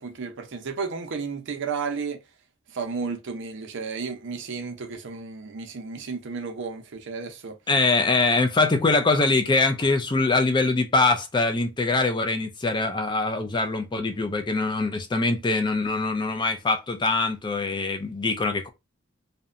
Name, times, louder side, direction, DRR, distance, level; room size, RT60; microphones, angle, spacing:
voice 1, 0.0-2.2 2.7-7.6, right 5 dB, 60° right, 0.6 m, -33 dB
voice 2, 7.7-18.7, left 3 dB, 20° left, 0.4 m, -23 dB
2.7 x 2.1 x 2.4 m
head